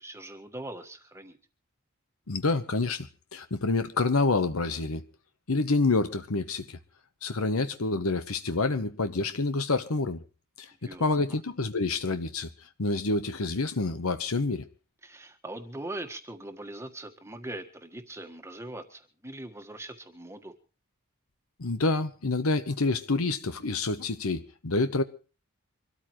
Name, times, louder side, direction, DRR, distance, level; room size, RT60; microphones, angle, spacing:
voice 1, 0.0-1.4 10.9-11.4 15.0-20.5, right 1 dB, 10° right, 7 dB, 1.6 m, -41 dB
voice 2, 2.3-3.1 3.3-5.0 5.5-6.8 7.2-10.2 10.6-12.5 12.8-14.7 21.6-25.0, left 3 dB, 80° left, 10 dB, 1.1 m, -27 dB
25.0 x 13.5 x 3.1 m, 0.36 s
head